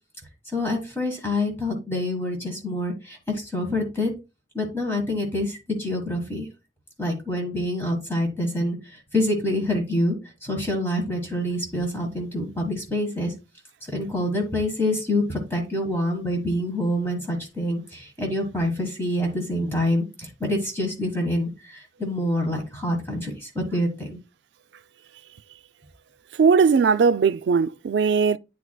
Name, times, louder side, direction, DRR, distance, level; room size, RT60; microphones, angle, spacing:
voice 1, 0.5-4.1 4.5-6.5 7.0-10.2 10.4-13.3 13.9-24.2, left 1 dB, 15° left, 1.5 m, -26 dB
voice 2, 26.4-28.4, right 5 dB, 70° right, 0.3 m, -19 dB
9.4 x 4.7 x 2.2 m
head